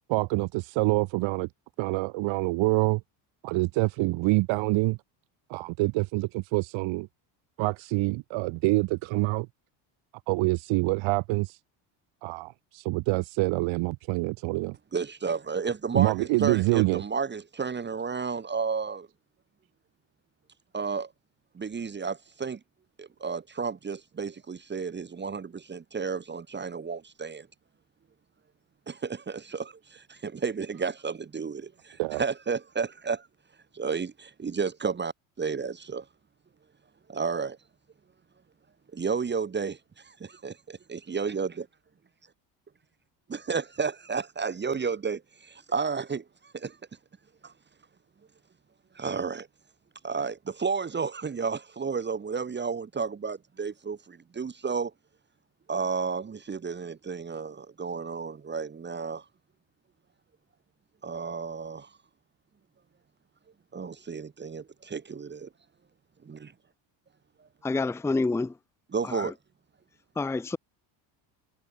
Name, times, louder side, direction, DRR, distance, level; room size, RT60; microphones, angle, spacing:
voice 1, 0.1-1.5 1.8-3.0 3.4-5.0 5.5-7.1 7.6-9.5 10.3-11.6 12.2-14.7 15.9-17.0 32.0-32.2, right 23 dB, 70° right, 1.4 m, -26 dB
voice 2, 14.9-19.1 20.7-21.1 21.5-22.6 23.0-27.5 28.9-33.3 33.7-35.1 35.4-36.1 37.1-37.6 38.9-41.6 43.3-46.8 47.4-47.5 48.9-49.5 50.0-54.9 55.7-59.2 61.0-61.9 63.7-65.5 66.3-66.4 68.9-69.3, right 5 dB, 20° right, 1.4 m, -32 dB
voice 3, 67.6-68.5 69.0-69.3 70.2-70.6, left 3 dB, 5° left, 0.6 m, -28 dB
cardioid pair, 115°, 48 cm